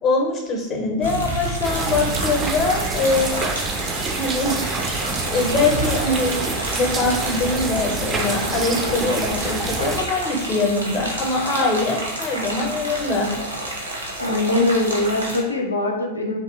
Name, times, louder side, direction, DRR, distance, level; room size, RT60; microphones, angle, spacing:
voice 1, 0.0-3.5 4.1-4.6 5.3-13.3, left 3 dB, 30° left, 1 dB, 0.6 m, -23 dB
sound 1, 1.0-15.4, right 1 dB, 80° right, 0.7 m, -29 dB
sound 2, 1.6-10.0, right 3 dB, 20° right, 0.3 m, -27 dB
voice 2, 14.2-16.4, left 2 dB, 80° left, 1 dB, 0.4 m, -22 dB
2.6 x 2.3 x 2.4 m, 0.93 s
figure-of-eight pair, 90°, 0 cm